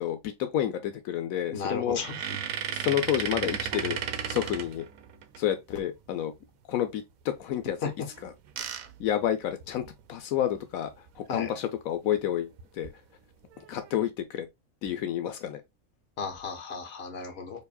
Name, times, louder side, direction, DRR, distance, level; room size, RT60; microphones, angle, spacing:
voice 1, 0.0-2.0 2.3-2.4 2.7-4.0 4.3-4.8 5.4-6.3 6.7-8.3 9.0-12.9 13.6-14.5 14.8-15.6, left 11 dB, 85° left, 1.1 m, -30 dB
voice 2, 1.5-2.2 7.8-7.9 11.3-11.5 16.2-17.6, left 5 dB, 50° left, 1.2 m, -34 dB
sound 1, 1.9-5.4 8.1-10.0 10.5-10.6 10.9-11.1 12.6-12.9 13.5-14.0, right 8 dB, 90° right, 1.1 m, -35 dB
4.7 x 2.9 x 2.3 m
omnidirectional pair, 1.4 m